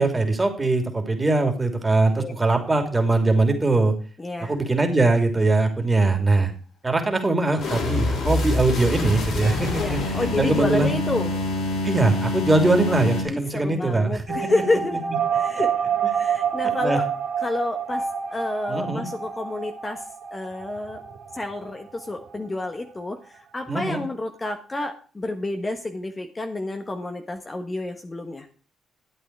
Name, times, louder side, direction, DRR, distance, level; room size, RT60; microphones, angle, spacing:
voice 1, 0.0-3.9 4.4-6.5 6.8-10.9 11.8-14.4 16.8-17.0 18.7-19.0 23.7-24.0, right 2 dB, 20° right, 5 dB, 2.9 m, -21 dB
voice 2, 4.2-4.6 9.7-11.3 13.3-15.0 15.3-15.7 16.1-17.1 17.4-18.0 18.3-20.0 20.3-21.0 21.3-28.5, left 2 dB, 20° left, 5 dB, 1.4 m, -29 dB
sound 1, 7.6-13.2, left 2 dB, 65° left, 6.5 m, -26 dB
sound 2, 14.3-22.8 23.1-23.2 23.3-23.4, right 7 dB, 85° right, 2.8 m, -28 dB
12.0 x 8.4 x 4.7 m, 0.38 s
cardioid pair, 90°, 0 cm